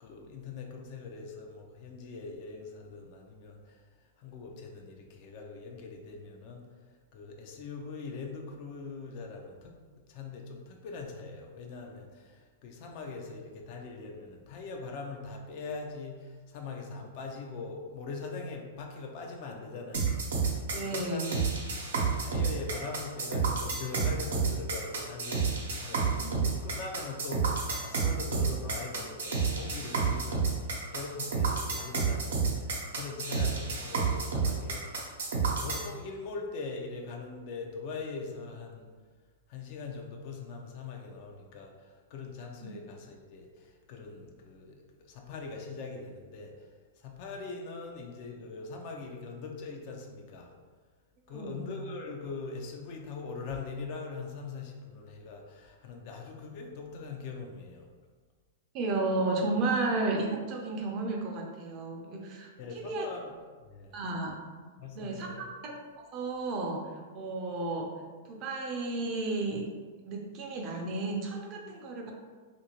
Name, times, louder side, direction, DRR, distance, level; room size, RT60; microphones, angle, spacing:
voice 1, 0.0-3.8 4.2-6.7 7.1-9.7 10.1-21.4 22.2-38.9 39.5-46.7 47.0-50.5 51.3-57.9 62.6-63.3 63.6-64.0 64.8-65.5, left 4 dB, 50° left, 1 dB, 0.5 m, -42 dB
sound 1, 19.9-35.9, right 5 dB, 80° right, 0.7 m, -30 dB
voice 2, 20.7-21.4 26.1-26.5 42.6-42.7 51.3-51.7 58.7-63.1 63.9-64.3 64.9-67.9 68.2-69.7 70.1-72.1, right 2 dB, 40° right, 1 dB, 0.5 m, -33 dB
2.7 x 2.6 x 2.9 m, 1.5 s
hypercardioid pair, 120°, 0 cm